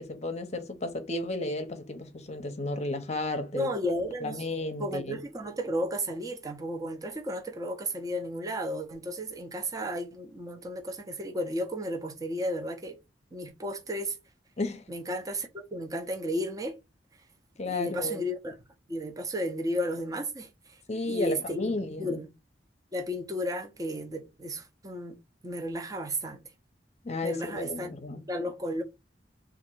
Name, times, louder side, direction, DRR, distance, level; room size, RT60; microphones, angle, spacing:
voice 1, 0.0-3.7 4.2-5.2 14.6-14.8 17.6-18.2 20.9-22.2 27.0-28.2, left 2 dB, 40° left, 0.8 m, -33 dB
voice 2, 3.5-4.4 4.8-13.0 13.3-14.2 14.9-16.8 17.7-18.5 18.9-20.5 21.1-22.3 22.9-25.2 25.4-26.4 27.2-27.9 28.3-28.8, equal, 20° right, 0.8 m, -33 dB
3.5 x 2.5 x 4.6 m
head